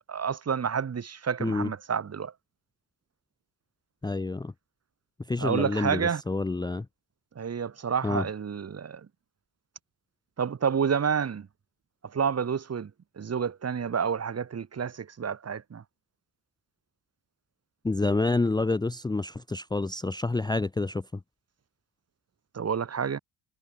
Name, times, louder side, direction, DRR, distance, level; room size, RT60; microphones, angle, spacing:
voice 1, 0.1-2.3 5.4-6.2 7.4-9.0 10.4-11.5 12.1-12.9 13.2-15.8 22.5-23.2, right 7 dB, 30° right, 2.3 m, -29 dB
voice 2, 1.4-1.7 4.0-4.5 5.3-6.9 8.0-8.2 17.8-21.1, left 3 dB, 10° left, 0.7 m, -28 dB
cardioid pair, 105°, 47 cm